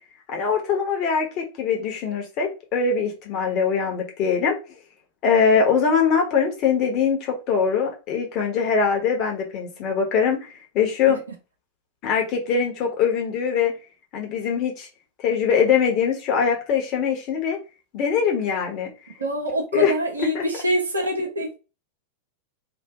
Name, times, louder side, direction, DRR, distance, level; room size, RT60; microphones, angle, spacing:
voice 1, 0.3-4.6 5.2-11.2 12.0-13.7 14.1-14.9 15.2-17.6 17.9-18.9 19.7-19.9 20.3-20.4, left 6 dB, 40° left, 1.2 m, -22 dB
voice 2, 19.2-21.6, right 1 dB, 75° right, 1.0 m, -25 dB
3.0 x 2.6 x 3.7 m
figure-of-eight pair, 90°, 0 cm